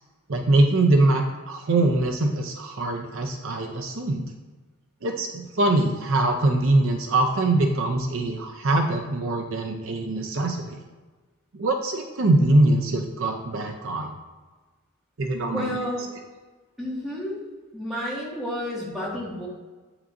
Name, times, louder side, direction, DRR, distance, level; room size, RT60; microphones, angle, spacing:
voice 1, 0.3-4.2 5.0-10.8 11.6-14.1 15.2-15.7, right 2 dB, 60° right, 3 dB, 0.6 m, -23 dB
voice 2, 15.5-16.1 16.8-17.4 17.7-19.5, equal, ahead, -8 dB, 2.0 m, -31 dB
8.3 x 5.8 x 2.6 m, 1.3 s
head